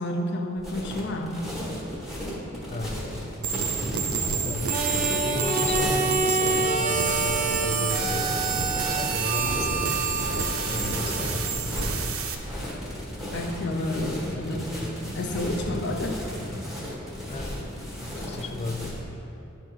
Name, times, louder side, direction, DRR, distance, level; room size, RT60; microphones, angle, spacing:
voice 1, 0.0-1.5 13.3-14.7 15.1-16.2, left 1 dB, 55° left, 3 dB, 0.7 m, -30 dB
sound 1, 0.6-19.0, equal, ahead, 1.3 m, -34 dB
voice 2, 2.7-3.5 4.4-10.0 10.7-11.5 17.3-17.7 18.1-19.0, left 3 dB, 30° left, 7 dB, 0.3 m, -35 dB
sound 2, 3.4-12.3, right 5 dB, 85° right, 0.6 m, -30 dB
Harmonica, 4.5-11.5, right 3 dB, 40° right, 0.5 m, -28 dB
10.5 x 3.7 x 4.7 m, 3.0 s
head